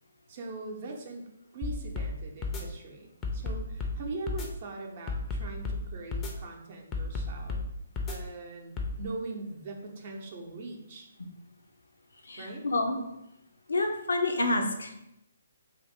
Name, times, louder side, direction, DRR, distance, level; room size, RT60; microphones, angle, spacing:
voice 1, 0.3-7.7 8.1-11.1 12.4-12.7, right 3 dB, 45° right, 1 dB, 0.6 m, -41 dB
sound 1, 1.6-2.1 2.4-2.6 3.2-4.0 4.3-4.5 5.1-5.8 6.1-6.3 6.9-7.7 8.0-8.2 8.8-8.9, left 4 dB, 20° left, 0.5 m, -32 dB
voice 2, 12.2-13.0 13.7-15.0, left 2 dB, 75° left, 4 dB, 0.5 m, -28 dB
2.5 x 2.5 x 4.2 m, 0.84 s
figure-of-eight pair, 135°, 0 cm